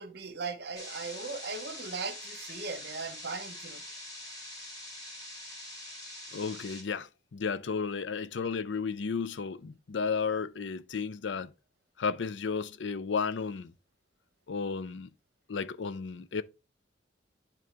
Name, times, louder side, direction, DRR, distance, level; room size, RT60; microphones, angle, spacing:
voice 1, 0.0-3.8, right 4 dB, 65° right, 1.2 m, -38 dB
sound 1, 0.7-6.8, left 1 dB, 20° left, 3.2 m, -44 dB
voice 2, 6.3-11.5 12.0-13.7 14.5-15.1 15.5-16.4, left 5 dB, 80° left, 0.5 m, -33 dB
10.5 x 3.9 x 3.4 m
head